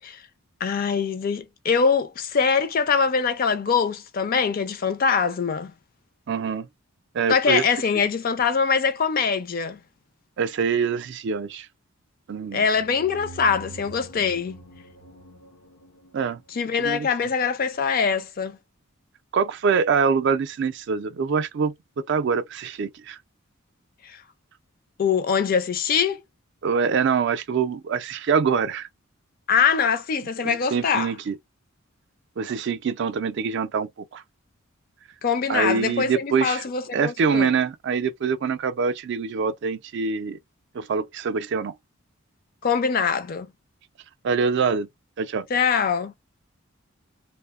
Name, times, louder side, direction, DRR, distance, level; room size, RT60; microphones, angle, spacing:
voice 1, 0.6-5.7 7.3-9.8 12.5-14.6 16.5-18.6 24.0-24.2 25.0-26.2 29.5-31.1 35.2-37.5 42.6-43.5 45.5-46.1, left 6 dB, 45° left, 0.4 m, -23 dB
voice 2, 6.3-6.7 7.1-7.6 10.4-11.7 12.3-12.6 16.1-16.4 16.8-17.1 19.3-23.2 26.6-28.9 30.4-31.4 32.4-34.2 35.5-36.6 36.9-40.4 40.7-41.7 44.2-44.9 45.2-45.5, right 5 dB, 55° right, 0.3 m, -24 dB
sound 1, 12.6-17.2, right 2 dB, 90° left, 0.7 m, -45 dB
2.7 x 2.1 x 2.3 m
head